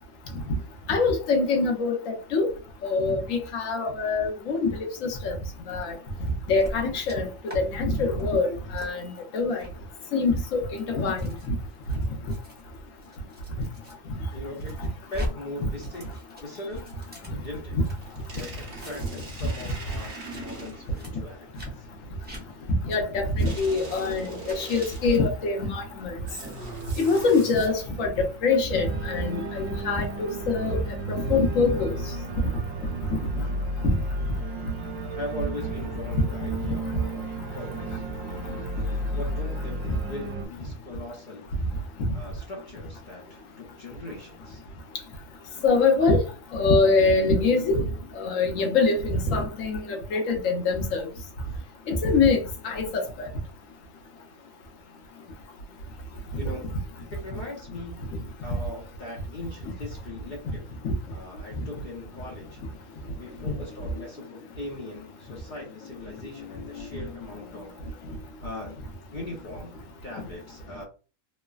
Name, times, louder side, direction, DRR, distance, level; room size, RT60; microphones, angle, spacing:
voice 1, 0.9-2.5 2.8-4.7 5.0-5.4 5.7-5.9 6.5-7.2 7.5-9.0 9.3-9.6 10.1-10.6 10.9-11.2 22.9-26.1 27.0-30.8 31.3-31.9 33.8-33.9 36.1-36.2 45.6-46.2 46.5-47.8 48.2-51.0 51.9-52.8 63.4-63.5, left 3 dB, 75° left, 1.1 m, -24 dB
sound 1, 6.6-7.2 7.5-7.6 8.0-8.3 8.8-8.9 9.5-9.7 10.4-13.9 14.3-15.3 15.6-17.9 18.3-19.2 19.5-19.8 20.1-20.4 20.9-21.1 21.5-21.7 22.2-22.4 22.9-23.0 23.4-23.5 23.8-24.1 24.4-25.2, equal, 10° right, 0.6 m, -40 dB
voice 2, 14.3-14.7 15.1-16.1 16.4-16.8 17.4-17.8 18.3-21.5 21.7-21.8 35.2-38.0 39.1-41.5 42.1-44.6 56.4-56.8 57.1-60.7 61.1-62.6 63.2-68.1 68.4-68.8 69.1-69.8 70.0-70.8, left 2 dB, 45° left, 0.7 m, -40 dB
sound 2, 17.9-21.0 23.5-25.3 26.3-28.0, right 2 dB, 50° right, 1.0 m, -41 dB
Organ, 23.6-40.5, right 1 dB, 80° right, 1.0 m, -34 dB
3.1 x 2.1 x 2.3 m
omnidirectional pair, 1.4 m